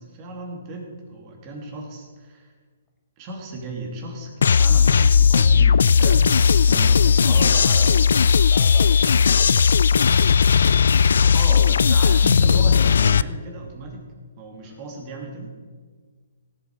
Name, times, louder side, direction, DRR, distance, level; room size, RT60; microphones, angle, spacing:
voice 1, 0.0-2.5 3.2-8.0 11.3-14.1 14.4-15.5, right 2 dB, 30° right, 0 dB, 2.9 m, -35 dB
sound 1, 4.4-13.2, left 6 dB, 75° left, 0.3 m, -16 dB
voice 2, 6.7-7.9 8.4-9.8 14.6-14.8, left 2 dB, 10° left, 1 dB, 2.0 m, -42 dB
18.0 x 7.8 x 4.7 m, 1.6 s
hypercardioid pair, 145°, 0 cm